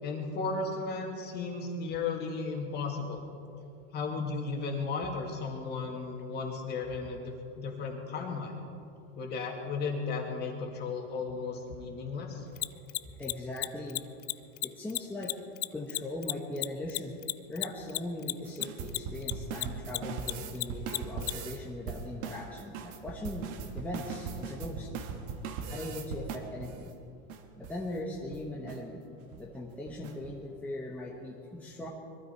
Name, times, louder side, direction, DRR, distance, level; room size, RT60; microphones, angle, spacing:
voice 1, 0.0-3.2 3.9-8.5 9.2-12.4, left 4 dB, 30° left, 1 dB, 2.3 m, -35 dB
Mechanisms, 12.6-19.3 19.6-21.3, left 20 dB, 75° left, 0.6 m, -31 dB
voice 2, 13.2-14.0 14.6-15.3 15.7-17.1 17.5-24.9 25.7-26.9 27.6-29.0 29.4-31.9, left 1 dB, 5° left, -3 dB, 1.1 m, -39 dB
sound 1, 18.4-21.6 21.9-26.8 27.3-27.4 27.6-27.8 28.1-28.4 28.7-28.8 29.2-29.4 29.9-30.3, right 6 dB, 50° right, 1.5 m, -39 dB
21.5 x 12.5 x 4.6 m, 2.5 s
supercardioid pair, 155°, 31 cm